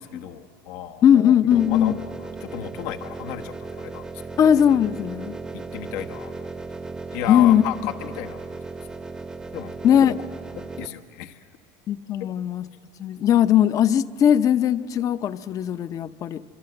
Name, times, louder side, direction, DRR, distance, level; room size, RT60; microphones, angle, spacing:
voice 1, 0.0-1.1 1.7-2.0 2.4-4.0 5.5-6.5 7.1-8.4 9.5-9.8 10.1-10.2 10.8-11.4, left 11 dB, 75° left, 5 dB, 1.4 m, -33 dB
voice 2, 1.0-2.0 4.4-5.4 7.3-7.6 9.8-10.1 11.9-12.6 13.0-16.4, left 9 dB, 35° left, 13 dB, 0.7 m, -19 dB
sound 1, 1.5-10.9, right 3 dB, 5° right, 0.7 m, -36 dB
26.0 x 25.0 x 7.9 m, 2.4 s
supercardioid pair, 130°, 9 cm